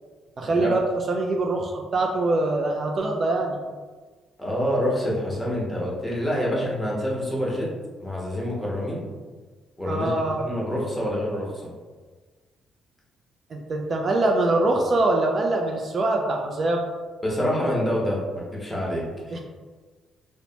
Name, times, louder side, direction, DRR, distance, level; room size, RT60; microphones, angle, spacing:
voice 1, 0.4-0.8 1.1-3.6 9.9-10.4 13.5-16.9 19.3-19.4, right 2 dB, 45° right, 1 dB, 0.3 m, -23 dB
voice 2, 4.4-7.7 8.0-9.0 9.8-10.1 10.4-11.7 17.2-19.4, equal, 10° left, -4 dB, 0.9 m, -27 dB
3.0 x 2.1 x 2.7 m, 1.4 s
cardioid pair, 90°, 0 cm